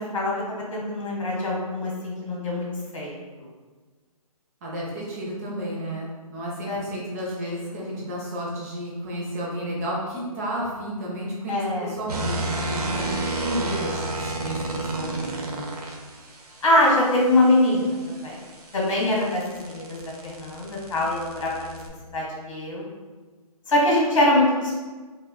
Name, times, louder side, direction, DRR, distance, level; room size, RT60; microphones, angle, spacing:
voice 1, 0.0-2.7 2.9-3.5 6.6-6.8 8.1-8.2 11.5-11.9 16.6-18.4 18.7-21.8 22.1-22.8 23.7-24.7, left 1 dB, 55° left, -3 dB, 1.3 m, -23 dB
voice 2, 4.6-15.7, right 1 dB, 25° right, -5 dB, 0.6 m, -32 dB
sound 1, 12.1-16.0 18.2-21.9, right 2 dB, 90° right, 0.6 m, -31 dB
4.3 x 2.4 x 2.2 m, 1.4 s
hypercardioid pair, 145°, 19 cm